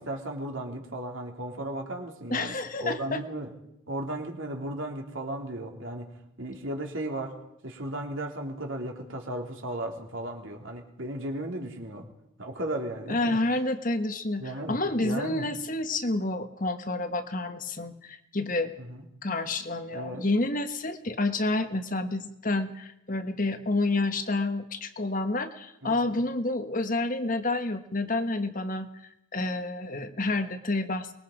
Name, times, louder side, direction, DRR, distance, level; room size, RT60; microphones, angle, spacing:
voice 1, 0.0-3.5 3.9-7.4 7.6-12.1 12.4-13.4 14.4-15.5 18.8-19.0 19.9-20.2 25.8-26.2, right 1 dB, 65° right, 2 dB, 3.1 m, -35 dB
voice 2, 2.3-3.2 13.1-18.7 19.2-28.9 29.3-31.1, left 2 dB, 40° left, 8 dB, 1.4 m, -29 dB
24.0 x 21.5 x 5.1 m, 0.82 s
head